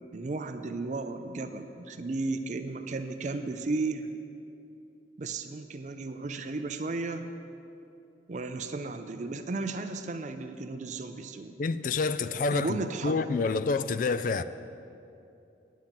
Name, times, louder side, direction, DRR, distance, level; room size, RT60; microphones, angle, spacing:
voice 1, 0.1-4.1 5.2-7.3 8.3-11.5 12.5-13.3, right 3 dB, 40° right, 0.4 m, -34 dB
voice 2, 11.6-12.8 13.0-14.4, left 4 dB, 45° left, 0.3 m, -28 dB
9.3 x 8.7 x 5.8 m
head